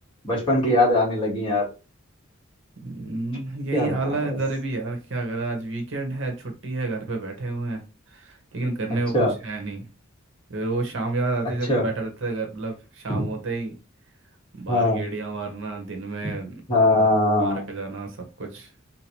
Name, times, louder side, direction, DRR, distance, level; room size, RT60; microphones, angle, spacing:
voice 1, 0.2-1.6 3.7-4.4 9.1-9.3 11.7-11.8 13.1-13.2 14.7-15.0 16.2-16.3 16.7-17.6, left 1 dB, 25° left, -4 dB, 1.7 m, -21 dB
voice 2, 2.8-7.8 8.1-9.9 10.5-13.7 14.5-16.6 17.0-18.7, right 3 dB, 65° right, 3 dB, 0.9 m, -30 dB
3.6 x 2.8 x 3.0 m, 0.31 s
head